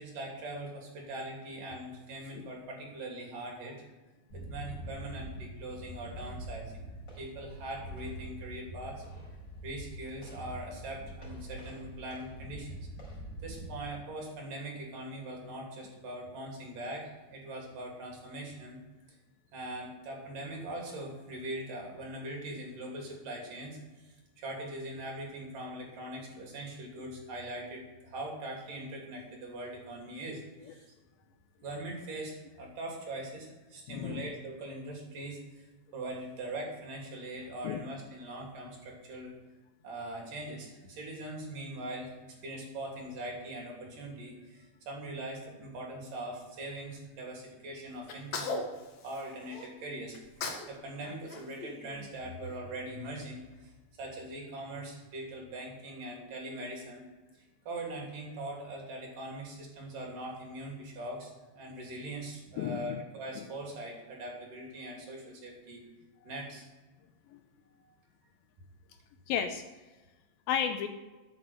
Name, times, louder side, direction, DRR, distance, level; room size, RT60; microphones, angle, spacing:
voice 1, 0.0-3.8 4.3-6.9 7.2-9.0 9.6-12.9 13.4-18.8 19.5-24.1 24.4-30.9 31.6-35.7 35.9-39.3 39.8-48.6 49.0-50.2 50.7-53.7 54.0-57.1 57.3-65.8 66.2-66.7 67.8-67.9, right 1 dB, 55° right, 0 dB, 4.7 m, -41 dB
sound 1, 4.3-13.8, right 1 dB, 25° left, 5.3 m, -44 dB
voice 2, 33.9-34.2 37.6-37.8 62.6-63.0 67.3-67.4 69.3-69.6 70.5-70.9, left 8 dB, 80° left, 7 dB, 2.3 m, -32 dB
Sneeze, 48.1-49.7 50.1-50.7 51.0-52.5, left 3 dB, 50° left, 2.5 m, -39 dB
13.5 x 8.6 x 6.7 m, 1.2 s
omnidirectional pair, 4.6 m